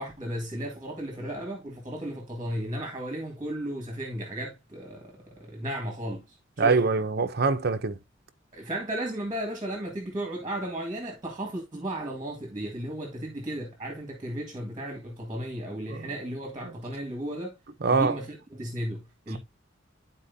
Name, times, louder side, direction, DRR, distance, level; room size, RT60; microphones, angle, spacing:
voice 1, 0.0-6.8 8.5-17.6 17.9-19.4, right 1 dB, 25° right, 1.8 m, -35 dB
voice 2, 6.6-8.0 16.0-16.1 17.8-18.2, right 4 dB, 50° right, 0.8 m, -24 dB
11.5 x 4.4 x 2.7 m
head